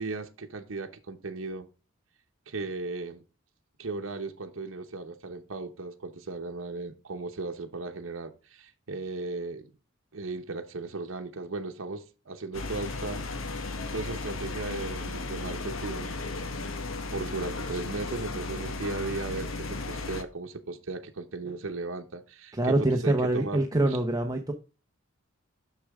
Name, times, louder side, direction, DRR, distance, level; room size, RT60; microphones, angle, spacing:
voice 1, 0.0-1.7 2.5-3.2 3.8-9.7 10.1-13.6 13.9-16.2 16.6-16.8 17.1-24.0, right 3 dB, 75° right, 0.9 m, -36 dB
sound 1, 12.5-20.2, left 3 dB, 80° left, 1.0 m, -35 dB
voice 2, 22.5-24.5, right 2 dB, 20° right, 0.9 m, -25 dB
6.7 x 6.4 x 3.6 m
head